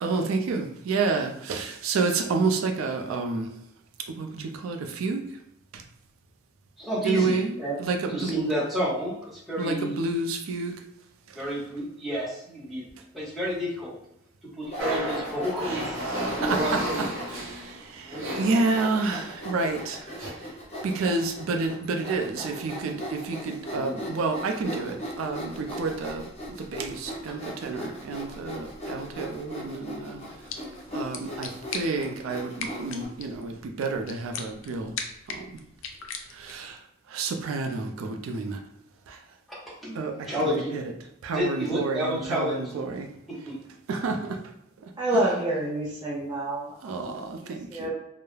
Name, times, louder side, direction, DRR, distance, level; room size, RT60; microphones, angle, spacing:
voice 1, 0.0-3.5 4.2-5.2 7.0-8.5 9.6-10.8 16.4-17.1 17.9-20.0 20.8-26.3 26.6-30.2 30.9-34.9 35.3-35.5 36.4-36.8 37.1-38.6 39.1-39.2 40.0-40.9 41.2-43.1 43.9-44.4 46.8-47.9, right 3 dB, 85° right, 0.3 m, -29 dB
voice 2, 6.8-7.8 8.1-10.0 11.3-12.8 13.1-14.0 14.6-17.0 18.0-18.4 20.2-20.3 23.7-24.0 39.8-40.7 41.3-42.8 43.4-43.6, equal, ahead, 0.9 m, -30 dB
Sawing, 14.6-17.5 18.1-18.2 18.7-33.1, equal, 30° left, 0.7 m, -38 dB
sound 1, 14.8-19.2 19.9-20.3, right 1 dB, 70° right, 0.7 m, -33 dB
sound 2, 30.2-36.7, left 5 dB, 70° left, 0.4 m, -40 dB
voice 3, 45.0-47.0 47.7-47.9, right 1 dB, 20° right, 0.4 m, -27 dB
2.3 x 2.0 x 3.1 m
head